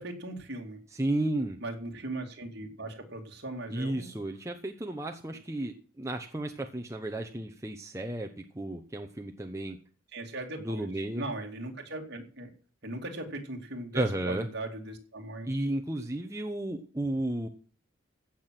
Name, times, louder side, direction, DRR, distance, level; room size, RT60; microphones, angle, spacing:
voice 1, 0.0-0.8 1.6-4.2 10.1-10.9 11.1-12.5 12.8-15.5, right 2 dB, 50° right, 2 dB, 2.6 m, -39 dB
voice 2, 0.9-1.6 3.7-9.8 10.6-11.3 13.9-14.5 15.4-17.5, right 1 dB, 15° right, 3 dB, 0.9 m, -33 dB
15.5 x 6.2 x 7.6 m, 0.40 s
head